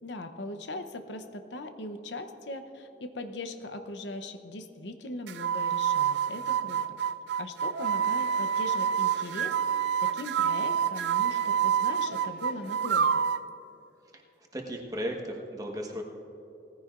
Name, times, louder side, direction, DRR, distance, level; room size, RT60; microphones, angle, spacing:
voice 1, 0.0-7.0 7.4-9.6 10.0-13.2, left 2 dB, 80° left, 8 dB, 0.8 m, -40 dB
sound 1, 5.3-13.5, right 8 dB, 70° right, 0.4 m, -27 dB
sound 2, 7.8-12.8, right 1 dB, 55° left, 1.7 m, -52 dB
voice 2, 14.5-16.0, equal, 20° right, 1 dB, 1.3 m, -35 dB
18.5 x 14.5 x 2.5 m, 3.0 s
head